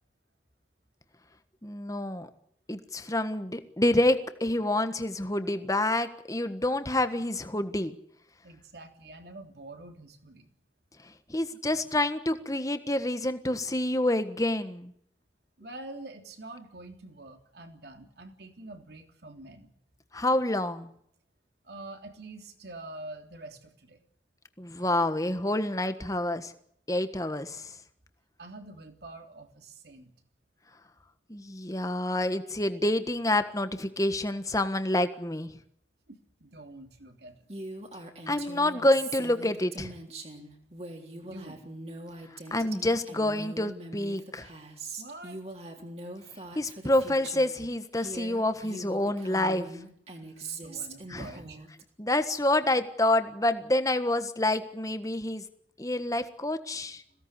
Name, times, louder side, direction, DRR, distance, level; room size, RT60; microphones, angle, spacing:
voice 1, 1.6-2.3 2.7-7.9 11.3-14.9 20.1-20.9 24.6-26.5 26.9-27.7 31.3-35.5 38.3-39.9 42.5-44.5 46.5-49.7 51.1-51.3 52.0-55.4 55.8-57.0, left 1 dB, 20° left, 10 dB, 1.4 m, -28 dB
voice 2, 8.4-10.5 15.6-19.7 21.6-24.0 28.4-30.1 36.1-37.5 41.2-41.6 45.0-45.4 50.4-51.6, right 2 dB, 65° right, 5 dB, 3.3 m, -46 dB
Female speech woman speaking, 37.5-47.6 47.9-51.8, right 2 dB, 35° right, 3.6 m, -42 dB
22.0 x 17.0 x 9.8 m, 0.70 s
head